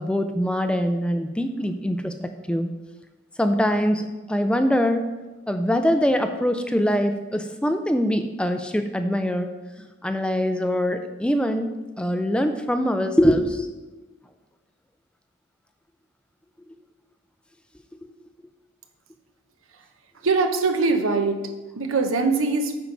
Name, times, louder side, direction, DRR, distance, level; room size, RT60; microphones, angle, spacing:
voice 1, 0.0-2.7 3.4-5.1 5.5-9.5 9.8-11.7 12.0-13.7 18.0-18.1, equal, 5° left, 7 dB, 0.3 m, -23 dB
voice 2, 20.2-22.8, right 3 dB, 85° right, 6 dB, 0.9 m, -22 dB
9.0 x 4.6 x 5.3 m, 1.1 s
head